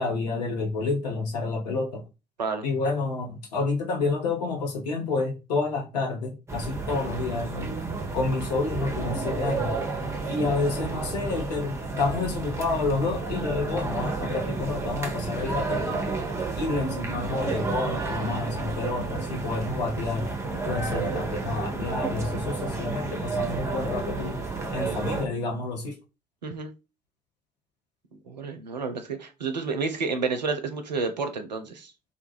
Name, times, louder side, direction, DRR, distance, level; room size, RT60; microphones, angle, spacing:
voice 1, 0.0-2.0 2.6-7.7 8.1-9.7 10.3-16.2 16.6-20.3 20.6-24.4 24.7-25.9, left 3 dB, 70° left, 0.7 m, -29 dB
sound 1, 6.5-25.2, right 3 dB, 15° right, 0.6 m, -31 dB
voice 2, 26.4-26.7 28.3-31.9, right 4 dB, 85° right, 0.4 m, -30 dB
2.2 x 2.2 x 3.0 m
figure-of-eight pair, 55°, 21 cm